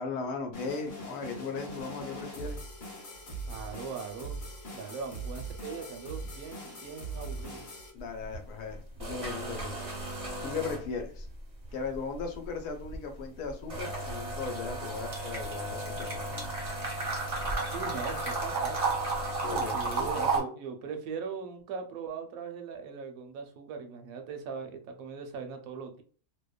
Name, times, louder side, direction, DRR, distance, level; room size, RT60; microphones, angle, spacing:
voice 1, 0.0-2.6 7.9-9.8 10.4-11.3 11.7-16.5 19.4-20.5, left 5 dB, 85° left, 4 dB, 1.2 m, -37 dB
sound 1, 0.5-7.9, right 1 dB, 40° left, 0.7 m, -41 dB
voice 2, 3.5-4.5 4.7-7.7 17.7-19.0 19.7-26.0, right 5 dB, 70° right, 5 dB, 1.0 m, -40 dB
sound 2, 8.0-8.4 8.7-11.3 11.6-20.4, right 3 dB, 30° right, 0.7 m, -33 dB
2.8 x 2.1 x 2.2 m, 0.42 s
omnidirectional pair, 1.6 m